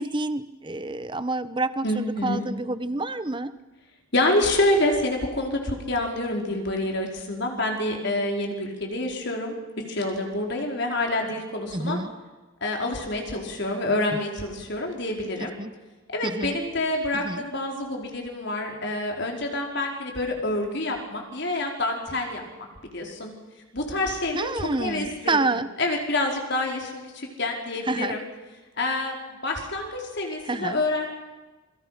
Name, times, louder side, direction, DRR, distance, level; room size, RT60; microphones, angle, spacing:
voice 1, 0.0-3.5 11.7-12.1 14.1-14.2 15.4-15.7 16.2-16.6 17.1-17.4 24.3-25.7 27.9-28.2 30.5-30.8, right 2 dB, 20° right, 13 dB, 0.9 m, -28 dB
voice 2, 1.8-2.4 4.1-9.5 9.9-12.0 12.6-15.6 16.1-22.4 22.9-23.3 23.7-25.4 25.8-28.2 28.8-29.2 29.4-31.1, left 2 dB, 55° left, 1 dB, 4.7 m, -27 dB
28.0 x 23.5 x 5.9 m, 1.2 s
head